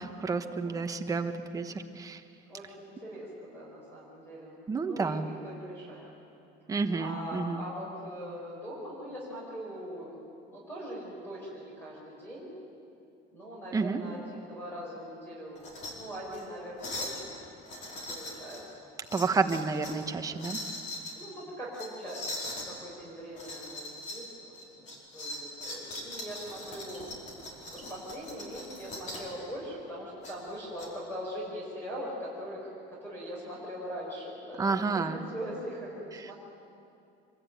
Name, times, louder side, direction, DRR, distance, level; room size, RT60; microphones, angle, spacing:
voice 1, 0.0-2.2 4.7-5.3 6.7-7.6 13.7-14.0 19.1-20.6 34.6-35.2, right 4 dB, 15° right, 6 dB, 1.1 m, -30 dB
voice 2, 2.5-4.5 4.8-6.0 7.0-10.2 10.5-12.5 13.3-15.6 15.9-17.5 18.1-18.9 21.1-24.3 25.1-27.1 27.7-36.3, equal, 10° left, -5 dB, 5.5 m, -41 dB
sound 1, 15.5-15.9 16.3-16.4 16.8-17.2 17.6-18.6 19.0-20.0 20.4-21.1 21.7-22.7 23.3-24.2 24.5-29.3 30.2-30.9, left 1 dB, 35° left, 4.9 m, -40 dB
26.0 x 23.0 x 9.2 m, 2.6 s
cardioid pair, 180°, 21 cm